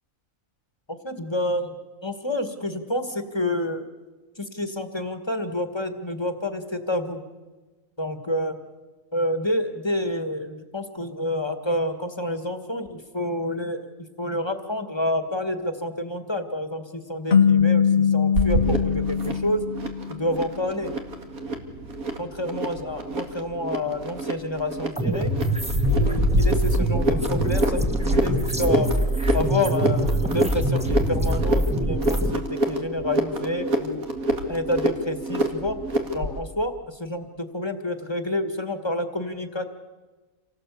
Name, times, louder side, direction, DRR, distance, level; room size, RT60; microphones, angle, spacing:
voice 1, 0.9-3.8 4.4-7.2 8.0-8.6 9.1-13.8 14.2-19.6 20.1-21.0 22.2-25.3 25.9-28.9 29.3-34.1 34.5-35.8 36.1-39.7, left 1 dB, 20° left, 8 dB, 1.8 m, -28 dB
sound 1, 17.3-20.5, left 7 dB, 50° left, 1.2 m, -21 dB
sound 2, 18.3-36.4, right 1 dB, 90° right, 2.7 m, -27 dB
sound 3, 25.0-32.3, right 1 dB, 5° right, 1.5 m, -24 dB
27.5 x 18.5 x 8.5 m, 1.3 s
omnidirectional pair, 1.5 m